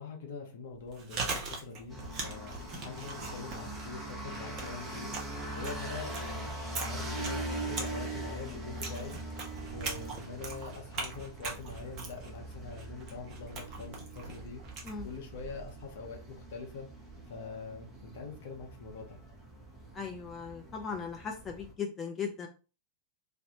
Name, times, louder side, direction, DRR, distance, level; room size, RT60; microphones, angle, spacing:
voice 1, 0.0-5.1 5.5-9.2 9.7-14.6 15.0-16.9 17.3-19.2, left 4 dB, 55° left, 2 dB, 0.7 m, -44 dB
Chewing mastication, 0.7-15.8, right 3 dB, 35° right, 0.7 m, -42 dB
sound 1, 1.9-21.7, right 2 dB, 10° right, 0.9 m, -42 dB
voice 2, 19.9-22.5, left 6 dB, 20° left, 2 dB, 0.4 m, -38 dB
2.5 x 2.1 x 2.8 m, 0.34 s
figure-of-eight pair, 90°, 0 cm